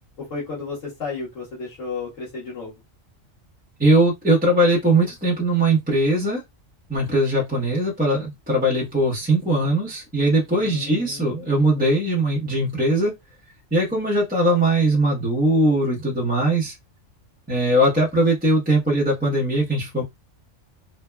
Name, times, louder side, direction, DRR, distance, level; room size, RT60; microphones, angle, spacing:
voice 1, 0.2-2.7 10.6-11.5, left 4 dB, 75° left, 1.5 m, -33 dB
voice 2, 3.8-6.4 6.9-13.1 13.7-16.7 17.5-20.0, right 1 dB, 10° right, 0.8 m, -20 dB
3.4 x 2.2 x 2.2 m
omnidirectional pair, 1.3 m